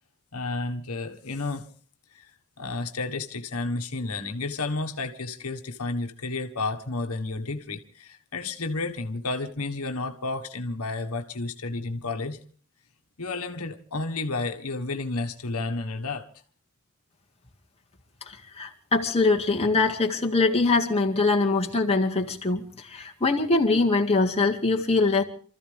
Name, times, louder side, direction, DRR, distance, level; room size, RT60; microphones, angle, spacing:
voice 1, 0.3-1.7 2.1-2.2 2.6-12.4 13.2-16.3, left 3 dB, 75° left, 1.5 m, -31 dB
voice 2, 18.3-25.2, left 3 dB, 30° left, 2.1 m, -23 dB
28.5 x 14.0 x 3.5 m
head